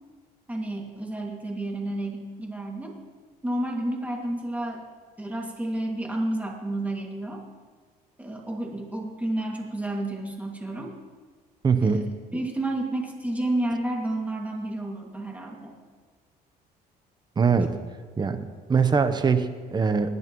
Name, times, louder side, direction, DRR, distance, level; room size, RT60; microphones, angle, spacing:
voice 1, 0.5-3.0 3.4-4.8 5.2-7.4 8.2-10.9 11.8-15.7, right 1 dB, 10° right, 0 dB, 2.2 m, -31 dB
voice 2, 11.6-12.1 17.4-17.8 18.2-20.1, right 5 dB, 25° right, 9 dB, 0.9 m, -22 dB
19.5 x 11.0 x 3.1 m, 1.5 s
cardioid pair, 110°, 17 cm